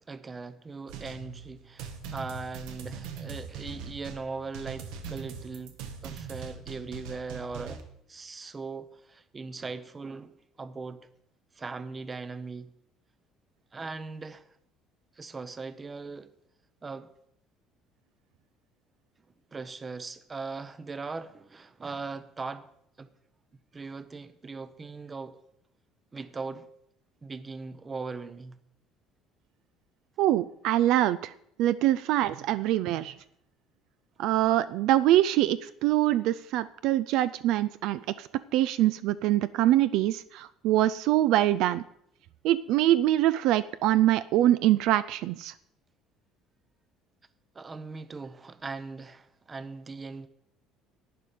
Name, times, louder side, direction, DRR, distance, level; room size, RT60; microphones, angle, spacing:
voice 1, 0.1-5.8 6.0-10.3 10.6-11.1 11.5-12.7 13.7-14.5 15.2-16.3 16.8-17.1 19.5-22.7 23.0-23.1 23.7-25.4 26.1-26.7 27.2-28.6 47.5-50.3, right 4 dB, 20° right, 0.6 m, -39 dB
sound 1, 0.9-7.8, right 6 dB, 85° right, 1.3 m, -41 dB
voice 2, 30.2-31.3 31.6-33.2 34.2-41.8 42.4-45.5, right 13 dB, 70° right, 0.3 m, -24 dB
11.0 x 9.2 x 5.0 m
cardioid pair, 145°, 0 cm